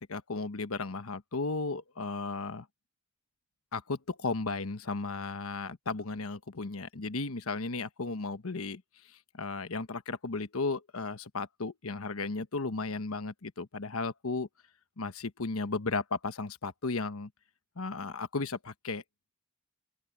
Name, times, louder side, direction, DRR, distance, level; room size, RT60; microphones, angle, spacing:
voice 1, 0.1-2.7 3.7-8.8 9.3-14.5 15.0-17.3 17.8-19.0, left 3 dB, 85° left, 1.2 m, -35 dB
open air
head